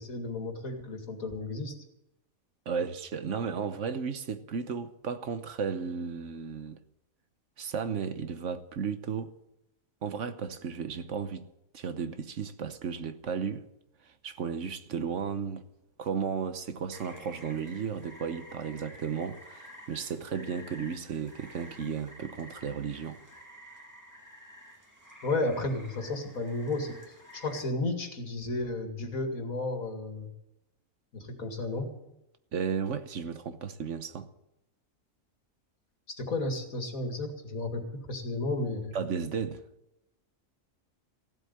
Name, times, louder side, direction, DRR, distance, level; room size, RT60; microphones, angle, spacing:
voice 1, 0.0-1.8 25.2-27.0 27.3-30.3 31.1-31.9 36.1-39.0, left 2 dB, 85° left, 2.5 m, -33 dB
voice 2, 2.7-6.8 7.6-9.4 10.0-11.5 11.7-13.7 14.0-15.6 16.0-23.2 32.5-34.3 38.9-39.6, right 6 dB, 65° right, 1.2 m, -34 dB
Rain, 16.9-27.6, equal, 15° right, 2.3 m, -51 dB
16.0 x 8.0 x 10.0 m
omnidirectional pair, 1.4 m